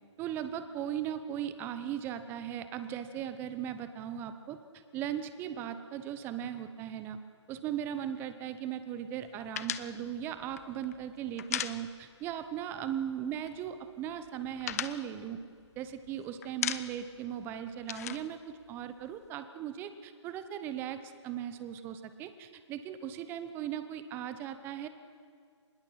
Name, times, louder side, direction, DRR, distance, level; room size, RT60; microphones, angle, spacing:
voice 1, 0.2-4.6 4.9-7.2 7.5-15.4 15.8-18.4 18.7-24.9, right 10 dB, 15° right, 11 dB, 0.9 m, -38 dB
sound 1, 9.5-12.3 12.6-12.8 13.1-13.8 14.1-16.1 16.4-17.2 17.4-19.3, left 10 dB, 30° left, 0.7 m, -38 dB
25.5 x 21.0 x 5.9 m, 2.1 s
figure-of-eight pair, 140°, 16 cm